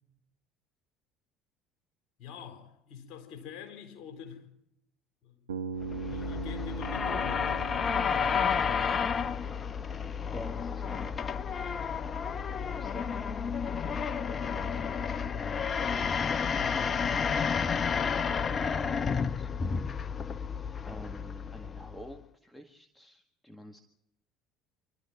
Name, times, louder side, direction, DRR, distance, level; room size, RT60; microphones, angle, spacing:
voice 1, 2.2-4.5 5.2-5.4 6.0-7.5 16.5-16.9, left 7 dB, 60° left, 4.4 m, -45 dB
Bass guitar, 5.5-9.6, right 5 dB, 85° right, 0.9 m, -40 dB
sound 1, 5.8-22.2, left 6 dB, 35° left, 0.8 m, -31 dB
voice 2, 10.3-11.4 12.6-13.1 13.7-15.0 16.1-19.5 20.8-23.8, equal, 5° left, 1.9 m, -48 dB
26.0 x 13.0 x 9.2 m
hypercardioid pair, 65°, 0 cm